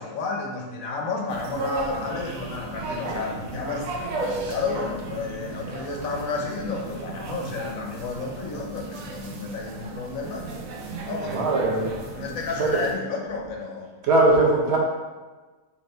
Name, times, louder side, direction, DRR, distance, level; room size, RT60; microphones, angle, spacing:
voice 1, 0.0-4.0 4.5-10.5 11.1-11.6 12.1-13.9, left 4 dB, 85° left, 0 dB, 1.2 m, -31 dB
sound 1, 1.3-12.9, right 2 dB, 85° right, 1.0 m, -34 dB
voice 2, 11.2-11.9 12.6-12.8 14.0-14.8, right 2 dB, 55° right, -2 dB, 1.0 m, -20 dB
3.4 x 3.3 x 3.9 m, 1.3 s
omnidirectional pair, 1.4 m